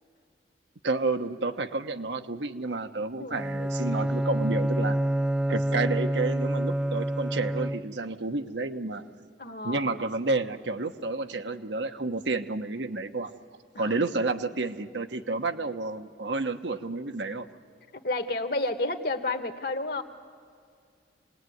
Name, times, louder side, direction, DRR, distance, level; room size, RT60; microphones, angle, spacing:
voice 1, 0.8-5.0 5.5-9.1 9.6-13.3 13.8-17.5, right 3 dB, 75° right, 7 dB, 1.1 m, -30 dB
voice 2, 3.2-3.5 9.4-9.9 13.7-14.0 17.9-20.0, left 2 dB, 55° left, 9 dB, 1.4 m, -31 dB
Bowed string instrument, 3.3-8.1, right 1 dB, 5° right, 0.5 m, -27 dB
27.5 x 19.0 x 9.4 m, 2.3 s
head